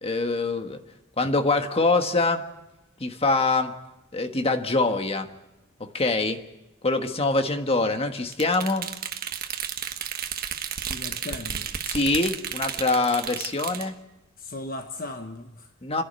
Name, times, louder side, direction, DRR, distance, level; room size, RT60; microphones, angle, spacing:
voice 1, 0.0-0.8 1.2-2.4 3.0-3.7 4.1-5.3 5.8-6.4 6.8-8.9 11.9-14.0 15.8-16.0, left 3 dB, 30° left, 6 dB, 1.4 m, -24 dB
sound 1, 8.3-13.9, right 8 dB, 45° right, 1.3 m, -33 dB
voice 2, 10.8-11.7 14.4-15.7, left 2 dB, 45° left, 6 dB, 1.1 m, -37 dB
29.5 x 11.0 x 8.2 m, 1.0 s
head